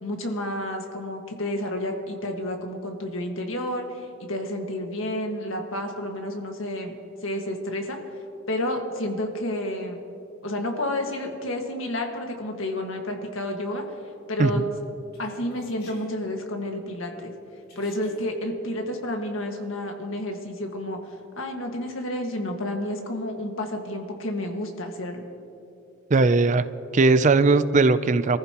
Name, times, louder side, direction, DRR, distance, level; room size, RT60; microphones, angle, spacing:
voice 1, 0.0-6.9 7.2-8.0 8.5-10.0 10.4-13.8 14.3-14.7 15.2-17.3 17.8-21.0 21.4-25.3, left 1 dB, 85° left, 3 dB, 1.7 m, -30 dB
Human voice, 15.1-16.1 17.7-18.3, left 1 dB, 50° left, 2.8 m, -48 dB
voice 2, 26.1-26.6 26.9-28.4, right 3 dB, 40° right, 13 dB, 0.4 m, -19 dB
25.5 x 14.5 x 3.0 m, 2.6 s
head